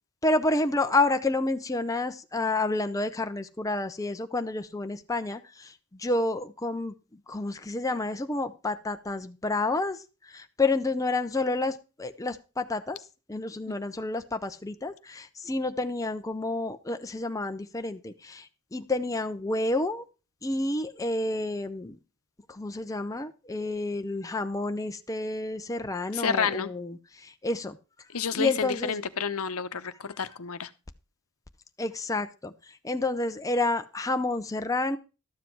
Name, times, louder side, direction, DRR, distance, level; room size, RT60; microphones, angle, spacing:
voice 1, 0.2-13.0 13.3-20.0 20.4-22.0 22.5-27.8 28.3-28.9 31.8-35.0, left 2 dB, 15° left, 7 dB, 0.6 m, -29 dB
voice 2, 26.1-26.7 28.1-30.7, left 6 dB, 75° left, 12 dB, 0.9 m, -30 dB
12.5 x 7.4 x 4.6 m, 0.31 s
head